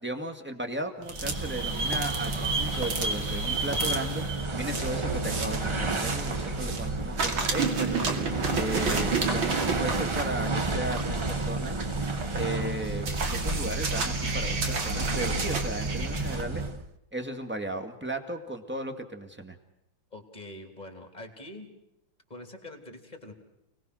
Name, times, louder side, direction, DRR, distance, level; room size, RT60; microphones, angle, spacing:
voice 1, 0.0-4.2 4.5-13.1 13.4-16.6 17.1-19.6, right 1 dB, 5° right, 6 dB, 1.8 m, -35 dB
sound 1, 1.0-6.9 7.2-16.4, right 4 dB, 75° right, 3.2 m, -32 dB
sound 2, 1.1-16.9, right 2 dB, 50° right, 0.3 m, -31 dB
voice 2, 20.1-21.7 22.3-23.3, left 1 dB, 20° left, 5 dB, 3.5 m, -44 dB
29.5 x 19.5 x 6.4 m, 0.87 s
omnidirectional pair, 2.2 m